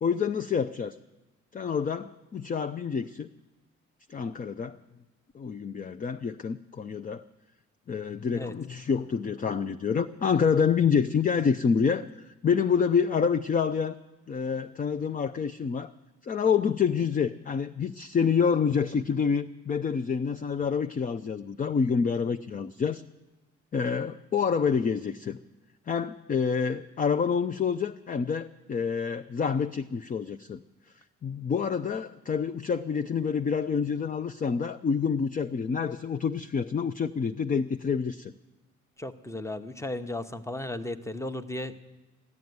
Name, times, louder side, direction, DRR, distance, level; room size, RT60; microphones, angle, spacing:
voice 1, 0.0-0.9 1.5-3.3 4.1-4.8 5.3-7.2 7.9-14.0 14.3-15.9 16.2-23.0 23.7-25.4 25.9-30.6 31.2-38.3, left 6 dB, 30° left, 9 dB, 0.5 m, -27 dB
voice 2, 39.0-41.8, left 1 dB, 10° left, 10 dB, 0.9 m, -35 dB
13.5 x 10.5 x 9.5 m, 1.1 s
cardioid pair, 90°, 30 cm